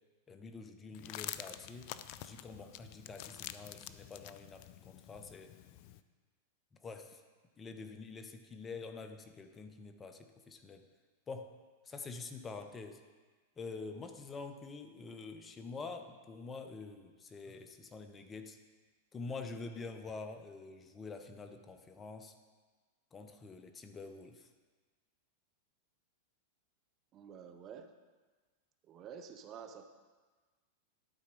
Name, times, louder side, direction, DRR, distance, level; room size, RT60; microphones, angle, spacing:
voice 1, 0.3-1.9 2.2-5.5 6.8-7.2 7.6-10.9 11.3-11.5 11.9-13.0 13.6-18.6 19.1-22.3 23.1-24.5, left 4 dB, 20° left, 7 dB, 0.7 m, -46 dB
sound 1, 0.9-6.0, left 13 dB, 55° left, 0.4 m, -48 dB
voice 2, 27.1-27.9 28.9-29.9, right 7 dB, 35° right, 7 dB, 0.7 m, -49 dB
11.5 x 4.3 x 5.3 m, 1.4 s
hypercardioid pair, 105°, 0 cm